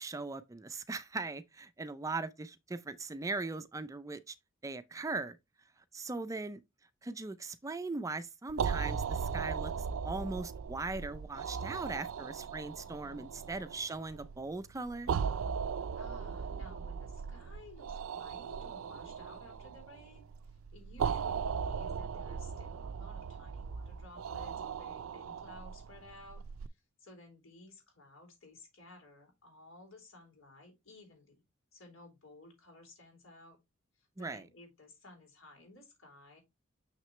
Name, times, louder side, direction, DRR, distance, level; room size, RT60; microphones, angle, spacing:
voice 1, 0.0-4.4 4.6-5.4 5.9-6.6 7.0-15.1 34.2-34.4, right 3 dB, 15° right, 0.4 m, -39 dB
sound 1, 8.5-26.7, right 6 dB, 80° right, 0.4 m, -38 dB
voice 2, 12.8-13.3 16.0-31.4 31.7-33.6 34.0-36.4, left 2 dB, 75° left, 3.9 m, -56 dB
6.6 x 6.1 x 3.1 m
head